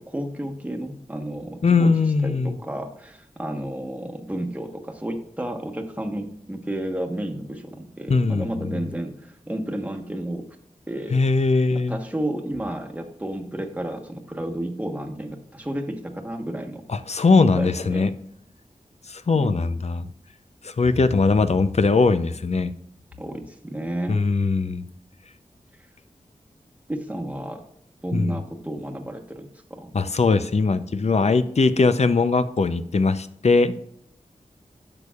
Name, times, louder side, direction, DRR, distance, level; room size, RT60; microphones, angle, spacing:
voice 1, 0.1-1.9 2.2-10.4 10.9-11.1 11.9-16.8 17.4-18.1 19.3-19.6 23.2-24.2 26.9-27.6 28.0-29.9, right 1 dB, 10° right, 3 dB, 1.2 m, -31 dB
voice 2, 1.6-2.6 8.1-8.9 11.1-12.0 16.9-18.1 19.1-20.1 20.6-22.7 24.1-24.9 28.1-28.4 29.9-33.7, left 4 dB, 50° left, 12 dB, 0.6 m, -20 dB
10.5 x 6.9 x 2.4 m, 0.72 s
wide cardioid pair, 75°, 14 cm